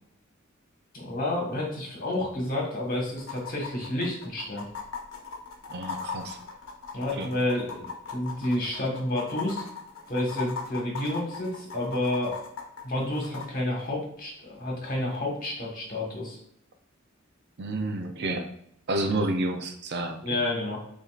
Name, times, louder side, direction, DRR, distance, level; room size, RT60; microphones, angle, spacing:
voice 1, 0.9-4.6 6.9-9.6 10.1-12.3 12.8-16.4 20.2-20.8, left 1 dB, 45° left, -2 dB, 1.5 m, -30 dB
sound 1, 2.1-2.2 2.5-2.6 3.2-13.5 15.1-15.2, left 5 dB, 75° left, 0.8 m, -38 dB
voice 2, 5.7-6.4 7.1-7.3 17.6-18.5 18.9-20.4, right 2 dB, 55° right, 6 dB, 0.5 m, -30 dB
6.7 x 2.7 x 2.5 m, 0.72 s
head